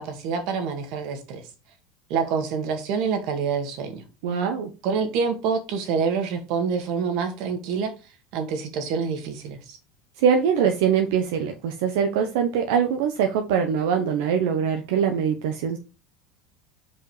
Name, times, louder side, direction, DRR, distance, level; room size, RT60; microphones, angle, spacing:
voice 1, 0.0-1.4 2.1-4.0 4.8-7.9 8.3-9.8, right 6 dB, 60° right, 2.0 m, -27 dB
voice 2, 4.2-4.7 10.2-15.8, right 7 dB, 80° right, 1.0 m, -23 dB
5.5 x 5.1 x 5.0 m
supercardioid pair, 145°, 0 cm